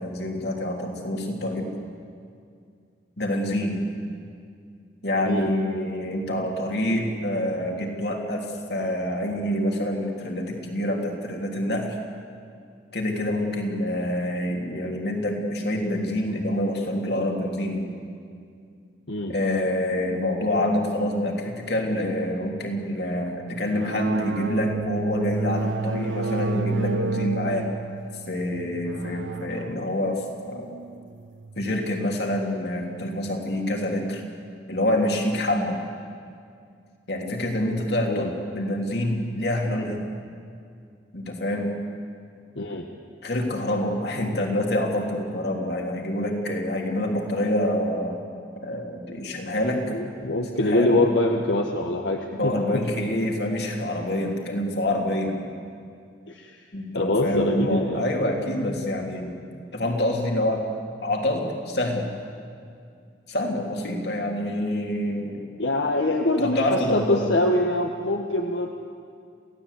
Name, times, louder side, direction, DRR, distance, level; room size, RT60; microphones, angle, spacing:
voice 1, 0.0-1.7 3.2-3.9 5.0-12.0 12.9-17.9 19.3-27.7 28.3-30.7 31.6-34.2 34.7-35.8 37.1-40.0 41.1-41.7 43.2-48.2 48.6-49.8 50.6-51.0 52.3-55.4 56.7-59.4 59.7-60.6 61.0-62.1 63.3-65.4 66.4-67.3, left 1 dB, 60° left, 1 dB, 3.3 m, -26 dB
sound 1, 23.7-31.9, right 3 dB, 90° right, 0.7 m, -31 dB
voice 2, 49.9-52.5 56.3-56.7 56.9-58.0 65.6-68.7, left 2 dB, 80° left, 2 dB, 1.4 m, -24 dB
27.5 x 16.5 x 8.4 m, 2.3 s
head